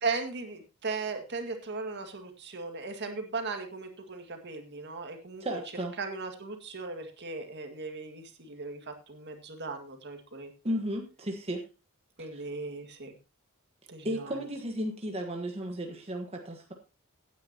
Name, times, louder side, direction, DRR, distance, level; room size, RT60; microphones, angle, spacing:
voice 1, 0.0-5.6 6.0-10.5 12.2-13.1 13.9-14.4, right 4 dB, 50° right, 5 dB, 2.0 m, -37 dB
voice 2, 5.4-5.9 10.6-11.6 12.2-12.4 14.0-16.7, right 1 dB, 30° right, 2 dB, 1.3 m, -34 dB
16.5 x 9.5 x 2.9 m, 0.29 s
head